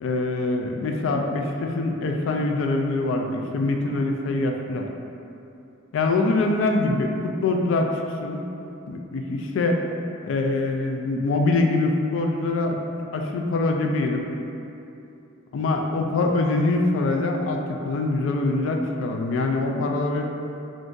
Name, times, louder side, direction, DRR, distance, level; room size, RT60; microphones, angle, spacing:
voice 1, 0.0-4.9 5.9-7.9 8.2-8.5 8.9-9.8 10.2-12.8 13.1-14.2 15.5-20.3, left 2 dB, 65° left, 2 dB, 0.3 m, -24 dB
2.5 x 2.5 x 3.6 m, 2.8 s
head